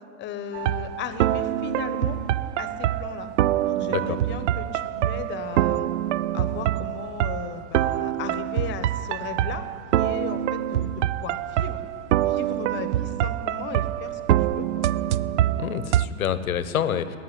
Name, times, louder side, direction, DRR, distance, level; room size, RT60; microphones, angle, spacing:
voice 1, 0.2-2.2 2.6-3.3 3.6-5.9 6.3-10.9 11.2-11.8 12.2-14.7, left 6 dB, 25° left, 10 dB, 1.1 m, -36 dB
sound 1, 0.5-16.1, right 12 dB, 60° right, 0.5 m, -25 dB
voice 2, 15.6-17.2, left 8 dB, 85° left, 13 dB, 1.0 m, -27 dB
15.5 x 9.3 x 9.9 m, 2.8 s
hypercardioid pair, 125°, 41 cm